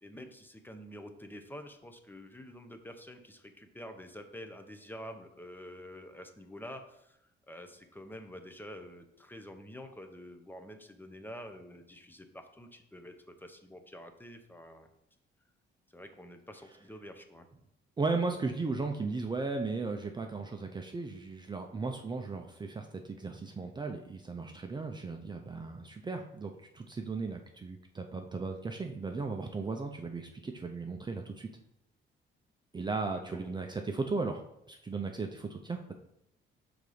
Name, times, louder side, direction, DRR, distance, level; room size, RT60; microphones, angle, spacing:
voice 1, 0.0-14.9 15.9-17.5 33.1-33.5, equal, 10° left, 7 dB, 0.8 m, -48 dB
voice 2, 18.0-31.5 32.7-35.9, right 3 dB, 20° right, 4 dB, 0.5 m, -36 dB
5.4 x 3.9 x 4.9 m, 0.81 s
cardioid pair, 90°, 20 cm